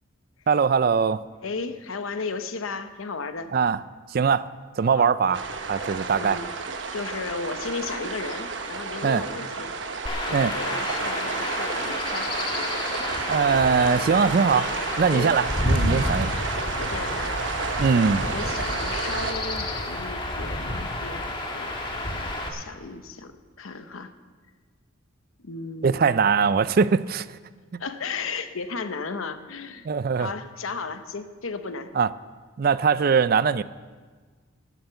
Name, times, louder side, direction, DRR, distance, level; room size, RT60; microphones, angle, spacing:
voice 1, 0.5-1.2 3.5-3.8 4.1-4.5 4.8-5.4 5.7-6.4 9.0-9.2 10.3-10.5 13.2-14.7 15.0-16.3 17.8-18.3 25.8-27.4 29.8-30.3 32.0-32.1 32.6-33.6, right 5 dB, 45° right, 16 dB, 0.4 m, -21 dB
voice 2, 1.4-3.5 5.0-5.4 6.1-6.5 6.9-9.7 10.2-12.7 15.1-15.3 16.0-16.2 16.8-17.8 18.2-24.1 25.4-26.2 27.8-29.9 30.2-31.9, left 4 dB, 85° left, 10 dB, 0.9 m, -35 dB
sound 1, 5.3-19.3, right 4 dB, 65° right, 1.1 m, -31 dB
Chirp tweet / Wind / Stream, 10.1-22.5, left 1 dB, 25° left, 1.5 m, -30 dB
12.5 x 10.0 x 6.9 m, 1.5 s
head